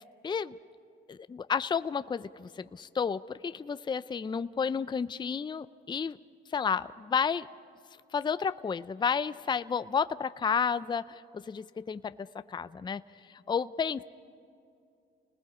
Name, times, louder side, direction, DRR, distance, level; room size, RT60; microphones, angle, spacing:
voice 1, 0.2-0.5 1.1-6.2 6.5-7.5 8.1-11.2 11.5-13.0 13.3-14.1, left 6 dB, 25° left, 14 dB, 0.5 m, -31 dB
30.0 x 20.0 x 4.9 m, 2.5 s
cardioid pair, 90°, 20 cm